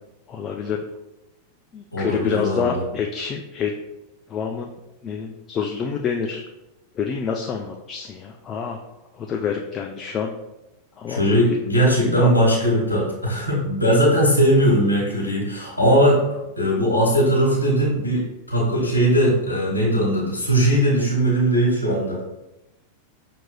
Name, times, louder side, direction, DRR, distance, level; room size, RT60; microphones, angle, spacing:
voice 1, 0.3-0.8 1.7-3.7 4.3-4.7 5.0-6.4 7.0-8.8 9.1-10.3 11.0-11.2 12.1-12.3, left 6 dB, 30° left, 2 dB, 0.3 m, -27 dB
voice 2, 1.9-2.8 11.1-16.2 16.6-22.2, equal, 85° left, -5 dB, 1.1 m, -19 dB
5.8 x 2.9 x 2.2 m, 0.95 s
figure-of-eight pair, 90°, 0 cm